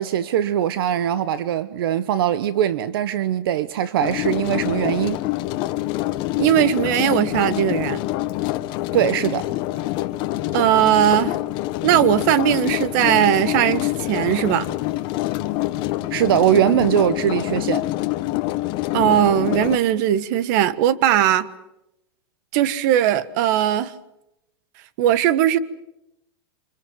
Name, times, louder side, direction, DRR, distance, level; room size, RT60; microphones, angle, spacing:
voice 1, 0.0-5.2 8.9-9.5 16.1-17.8, right 10 dB, 70° right, 1.1 m, -21 dB
sound 1, 4.0-19.8, left 16 dB, 40° left, 1.3 m, -26 dB
voice 2, 6.4-8.0 10.5-11.4 11.8-14.7 18.9-21.5 22.5-23.9 25.0-25.6, right 11 dB, 50° right, 1.5 m, -19 dB
27.0 x 26.0 x 7.8 m
supercardioid pair, 150°, 13 cm